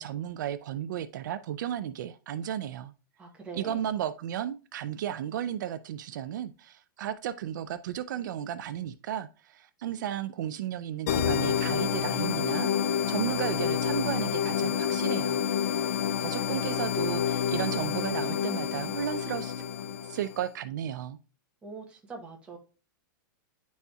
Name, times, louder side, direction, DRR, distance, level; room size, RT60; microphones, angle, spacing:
voice 1, 0.0-2.9 3.5-15.4 16.2-19.5 20.1-21.2, right 10 dB, 65° right, 0.4 m, -34 dB
voice 2, 3.2-3.8 21.6-22.6, right 4 dB, 10° right, 0.9 m, -42 dB
sound 1, 11.1-20.4, left 9 dB, 50° left, 0.4 m, -29 dB
10.0 x 4.1 x 2.3 m
supercardioid pair, 160°, 11 cm